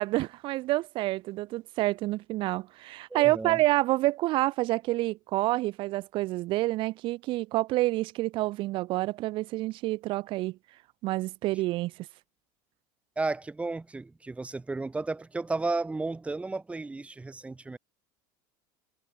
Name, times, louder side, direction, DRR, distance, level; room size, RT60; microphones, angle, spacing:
voice 1, 0.0-10.6 11.0-11.9, right 18 dB, 50° right, 0.4 m, -28 dB
voice 2, 3.1-3.6 13.2-17.8, right 3 dB, 10° right, 2.0 m, -33 dB
supercardioid pair, 120°, 11 cm